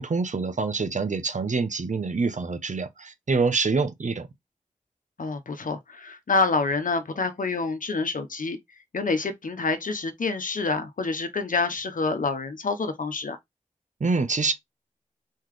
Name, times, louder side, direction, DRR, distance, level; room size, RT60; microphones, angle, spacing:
voice 1, 0.0-4.3 14.0-14.5, right 4 dB, 65° right, 0.8 m, -26 dB
voice 2, 5.2-8.6 8.9-13.4, left 3 dB, 80° left, 0.9 m, -27 dB
4.3 x 3.9 x 3.2 m
wide cardioid pair, 50°, 14 cm